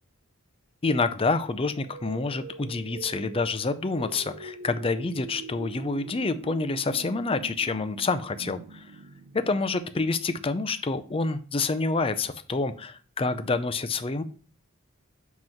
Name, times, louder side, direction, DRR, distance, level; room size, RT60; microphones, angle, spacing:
voice 1, 0.8-8.9 9.3-14.2, left 3 dB, 25° left, 11 dB, 0.5 m, -28 dB
sound 1, 1.6-10.5, right 4 dB, 85° right, 0.6 m, -44 dB
7.6 x 3.1 x 5.8 m, 0.42 s
head